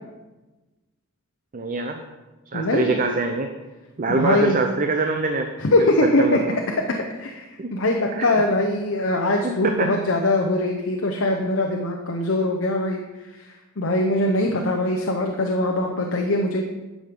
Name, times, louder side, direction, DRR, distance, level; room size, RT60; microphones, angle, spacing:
voice 1, 1.5-2.0 2.5-3.5 4.0-5.5 6.2-6.6 7.6-7.7 8.1-8.3 9.4-9.9, right 3 dB, 40° right, 5 dB, 0.6 m, -24 dB
voice 2, 2.5-3.0 4.1-4.6 5.6-13.0 13.3-13.5 13.8-16.6, left 2 dB, 65° left, 2 dB, 0.8 m, -22 dB
10.5 x 6.3 x 5.2 m, 1.2 s
head